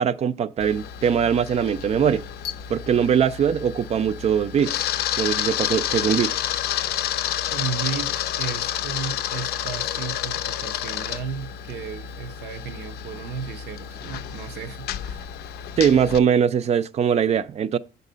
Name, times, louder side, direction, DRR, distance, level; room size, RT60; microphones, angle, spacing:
voice 1, 0.0-2.2 2.7-4.7 5.2-6.3 15.8-17.8, right 8 dB, 40° right, 0.4 m, -21 dB
Camera, 0.6-16.2, left 10 dB, 70° left, 0.5 m, -30 dB
voice 2, 7.5-15.3, right 6 dB, 70° right, 0.8 m, -34 dB
7.4 x 4.0 x 5.5 m
cardioid pair, 110°, 17 cm